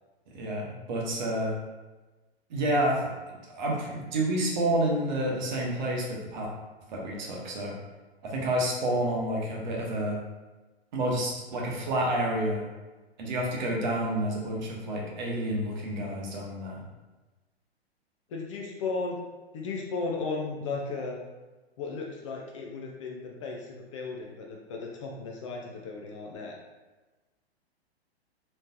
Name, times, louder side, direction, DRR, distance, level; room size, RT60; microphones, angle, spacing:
voice 1, 0.3-1.5 2.5-6.5 6.9-7.7 8.2-10.2 10.9-12.6 13.2-16.8, right 1 dB, 45° right, -2 dB, 1.0 m, -29 dB
voice 2, 18.3-19.2 19.5-21.2 21.8-26.6, left 4 dB, 30° left, 0 dB, 0.4 m, -35 dB
4.2 x 3.1 x 2.7 m, 1.2 s
figure-of-eight pair, 105°, 32 cm